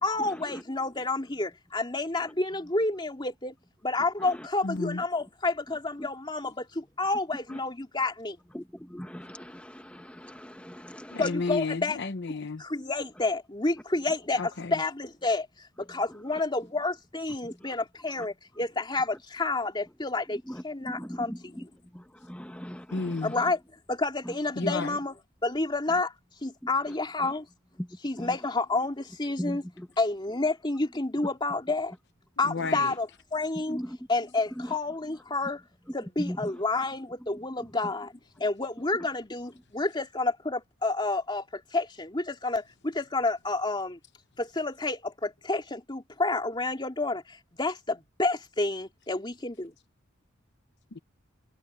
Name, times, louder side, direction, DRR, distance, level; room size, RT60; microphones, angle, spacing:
voice 1, 0.0-3.5 3.8-8.4 11.2-12.0 12.6-15.5 15.8-21.6 23.2-23.6 23.9-25.1 25.4-26.1 26.4-27.5 28.0-29.6 30.0-31.9 32.4-33.1 33.3-33.8 34.1-35.6 35.9-38.1 38.4-44.0 44.4-49.7, left 2 dB, 25° left, 2.8 m, -29 dB
voice 2, 4.6-5.0 11.1-12.6 14.4-14.8 22.9-23.3 24.6-25.0 32.4-32.9 50.9-51.0, left 3 dB, 55° left, 0.9 m, -32 dB
voice 3, 8.5-11.2 17.4-17.7 20.5-20.6 21.0-21.6 21.9-23.4 24.2-24.4 24.6-24.7 27.2-27.3 27.8-27.9 28.2-28.3 29.4-29.9 32.6-32.7 33.7-34.0 34.6-34.7 36.2-36.6, equal, 5° left, 1.5 m, -39 dB
head